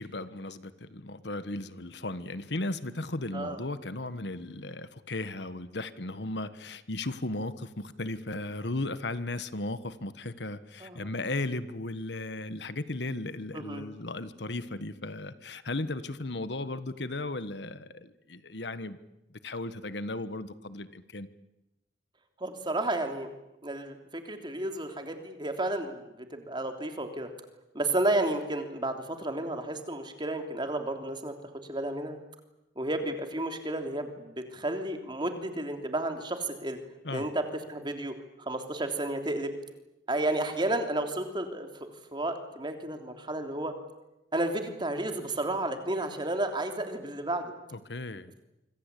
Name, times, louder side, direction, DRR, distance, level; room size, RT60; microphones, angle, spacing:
voice 1, 0.0-19.0 19.4-21.3 37.0-37.3 47.7-48.3, left 2 dB, 70° left, 13 dB, 1.4 m, -36 dB
voice 2, 13.5-13.9 22.4-23.3 23.6-27.3 27.7-31.3 31.7-32.2 32.7-36.8 37.1-37.4 37.7-39.5 40.1-43.7 44.3-47.5, right 1 dB, 25° right, 5 dB, 3.2 m, -32 dB
26.0 x 25.0 x 8.5 m, 0.93 s
head